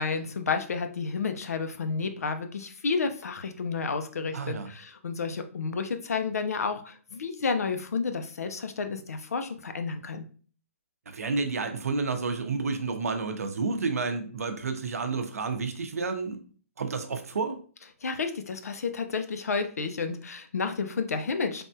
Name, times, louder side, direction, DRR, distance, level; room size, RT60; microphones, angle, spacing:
voice 1, 0.0-10.2 18.0-21.6, left 4 dB, 90° left, 8 dB, 0.5 m, -31 dB
voice 2, 4.3-4.7 11.1-16.4 16.8-17.6, right 4 dB, 75° right, 6 dB, 0.6 m, -30 dB
3.3 x 2.2 x 2.6 m, 0.42 s
hypercardioid pair, 170°, 8 cm